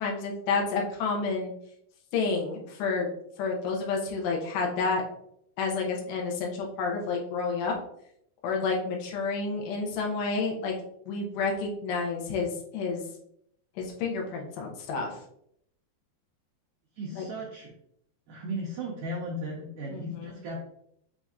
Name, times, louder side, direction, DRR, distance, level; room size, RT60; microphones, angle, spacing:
voice 1, 0.0-1.5 2.1-3.1 3.4-5.0 5.6-7.7 8.4-10.7 11.1-13.0 13.8-15.2 17.1-17.2 19.9-20.3, left 4 dB, 90° left, -1 dB, 3.1 m, -30 dB
voice 2, 17.0-17.7 18.3-20.6, right 1 dB, 85° right, -4 dB, 1.9 m, -36 dB
7.6 x 2.7 x 2.4 m, 0.71 s
omnidirectional pair, 4.8 m